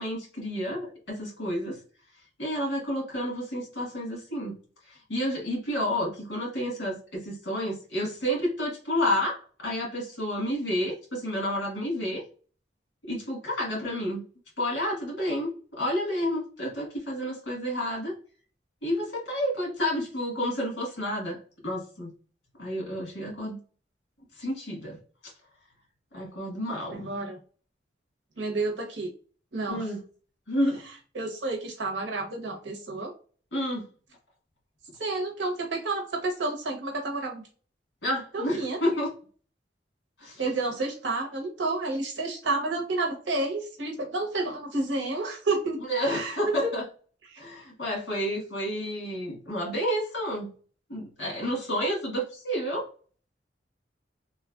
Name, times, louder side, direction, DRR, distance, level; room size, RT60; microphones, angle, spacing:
voice 1, 0.0-1.8 2.4-4.6 4.9-12.2 13.0-14.2 14.6-18.1 18.8-21.4 21.6-22.1 22.6-23.6 24.4-25.0 25.2-25.3 26.1-27.1 29.7-30.0 30.5-30.8 33.5-33.8 38.0-39.1 40.2-40.4 45.9-46.8 47.4-50.5 50.9-52.8, equal, 70° left, -1 dB, 1.4 m, -30 dB
voice 2, 26.9-27.4 28.4-29.1 29.5-29.9 31.1-33.1 35.0-37.4 38.3-38.8 40.4-45.8 46.0-46.4 46.6-46.7 47.3-47.4, right 2 dB, 75° right, 1 dB, 0.9 m, -30 dB
3.1 x 2.3 x 2.4 m, 0.40 s
head